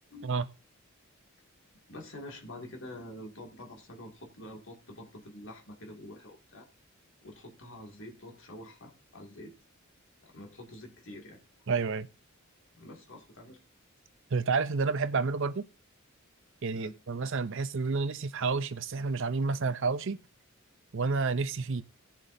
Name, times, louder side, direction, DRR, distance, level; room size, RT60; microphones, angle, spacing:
voice 1, 1.9-6.7 7.2-9.5 10.2-11.4 12.7-13.6 16.7-16.9, left 1 dB, 65° left, 2.2 m, -46 dB
voice 2, 11.7-12.1 14.3-15.6 16.6-20.2 20.9-21.8, right 4 dB, 60° right, 0.6 m, -30 dB
17.5 x 7.4 x 2.6 m
head